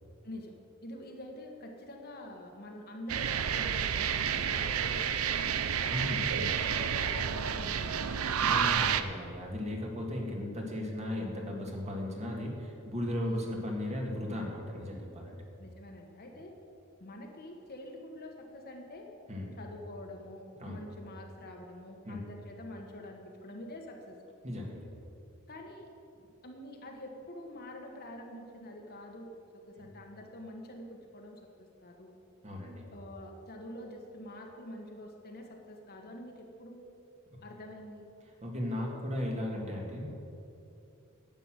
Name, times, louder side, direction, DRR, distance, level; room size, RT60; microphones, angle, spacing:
voice 1, 0.8-5.9 6.4-8.6 13.2-13.4 15.6-16.5 17.0-19.1 19.6-24.2 25.5-25.9 26.4-29.3 29.7-32.1 32.9-36.9 37.4-38.0, left 1 dB, 45° left, 2 dB, 1.5 m, -46 dB
sound 1, 3.1-9.0, right 8 dB, 85° right, 0.6 m, -30 dB
voice 2, 5.9-6.6 8.4-15.4 19.3-19.5 20.6-20.8 22.1-22.2 24.4-24.9 29.8-29.9 32.4-32.9 38.4-40.2, left 1 dB, 30° right, 0 dB, 1.9 m, -36 dB
10.5 x 8.2 x 7.5 m, 2.7 s
head